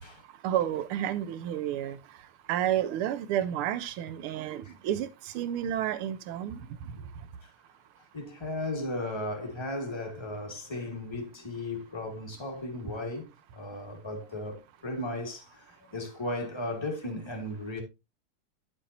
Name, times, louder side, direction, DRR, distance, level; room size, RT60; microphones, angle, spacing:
voice 1, 0.4-2.0 2.5-5.1 5.3-6.6, right 11 dB, 85° right, 1.6 m, -30 dB
voice 2, 8.1-17.8, left 1 dB, 15° left, 1.8 m, -36 dB
9.1 x 7.8 x 2.7 m
omnidirectional pair, 2.3 m